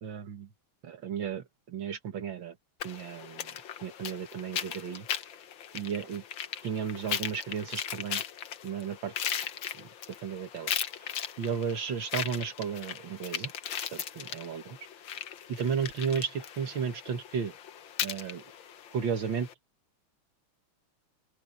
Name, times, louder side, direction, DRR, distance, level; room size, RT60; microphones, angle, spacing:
voice 1, 0.0-0.5 0.8-2.6 2.8-5.1 5.7-6.2 6.6-8.2 8.6-9.1 9.7-9.9 10.2-10.7 11.0-11.1 11.4-13.5 13.9-14.8 15.5-17.5 18.0-18.4 18.9-19.5, right 7 dB, 60° right, 2.2 m, -34 dB
sound 1, 2.8-19.5, left 9 dB, 65° left, 1.8 m, -38 dB
open air
omnidirectional pair, 2.4 m